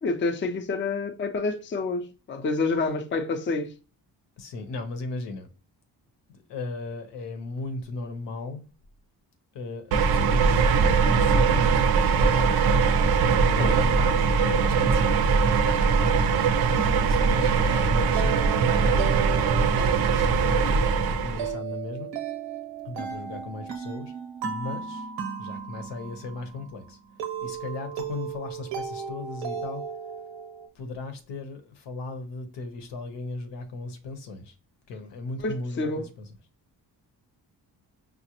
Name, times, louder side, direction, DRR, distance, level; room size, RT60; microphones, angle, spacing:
voice 1, 0.0-3.7 13.6-13.8 35.4-36.0, left 3 dB, 30° left, 0.5 m, -28 dB
voice 2, 4.4-5.5 6.3-8.6 9.5-11.7 12.2-12.7 13.4-15.4 15.6-16.2 16.6-19.1 19.7-22.1 22.8-24.1 24.4-25.1 25.4-27.0 27.4-29.8 30.7-34.5 34.9-36.2, left 3 dB, 80° left, 0.8 m, -36 dB
sound 1, 9.9-21.5, right 5 dB, 60° right, 0.5 m, -21 dB
sound 2, 15.9-30.7, right 7 dB, 90° right, 0.8 m, -36 dB
4.9 x 2.1 x 2.9 m
cardioid pair, 70°, 42 cm